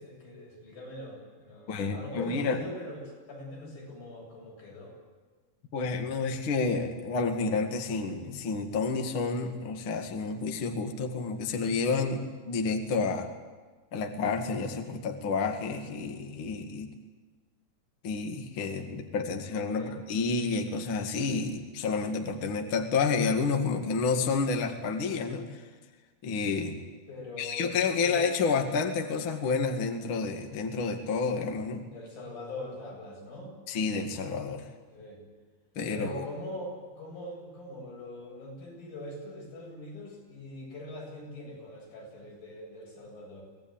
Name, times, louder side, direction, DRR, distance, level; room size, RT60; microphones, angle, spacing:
voice 1, 0.0-5.0 19.7-20.0 27.1-27.7 28.0-28.2 31.9-33.5 34.9-35.2 35.9-43.4, left 1 dB, 70° left, -1 dB, 9.8 m, -42 dB
voice 2, 1.7-2.6 5.7-13.3 13.9-16.9 18.0-25.6 26.2-26.8 27.4-31.8 33.7-34.7 35.8-36.3, left 4 dB, 40° left, 4 dB, 2.3 m, -30 dB
25.0 x 19.0 x 9.0 m, 1.3 s
omnidirectional pair, 4.2 m